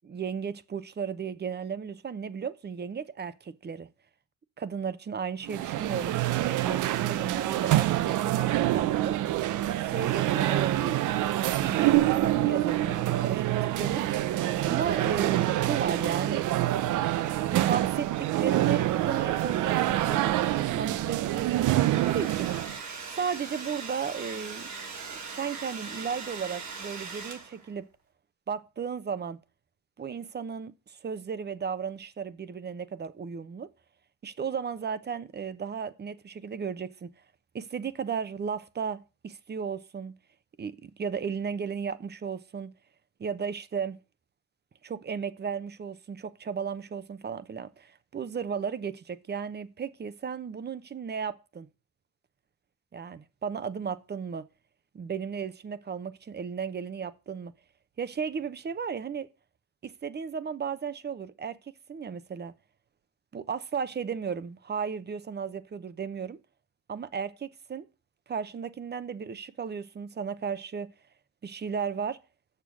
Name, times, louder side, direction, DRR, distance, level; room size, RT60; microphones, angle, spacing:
voice 1, 0.0-3.9 4.6-9.2 9.8-11.1 11.4-16.4 17.2-22.5 23.1-24.7 25.1-27.9 28.5-29.4 30.0-33.7 34.2-37.1 37.5-40.1 40.6-42.7 43.2-44.0 44.8-51.7 52.9-54.5 54.9-57.5 58.0-59.3 59.8-62.5 63.3-66.4 66.9-67.9 68.3-70.9 71.4-72.2, right 6 dB, 35° right, 0.8 m, -35 dB
sound 1, 5.4-22.8, right 14 dB, 85° right, 0.6 m, -26 dB
Domestic sounds home sounds, 21.7-27.7, right 5 dB, 65° right, 2.6 m, -40 dB
6.9 x 6.8 x 6.0 m
cardioid pair, 90°, 30 cm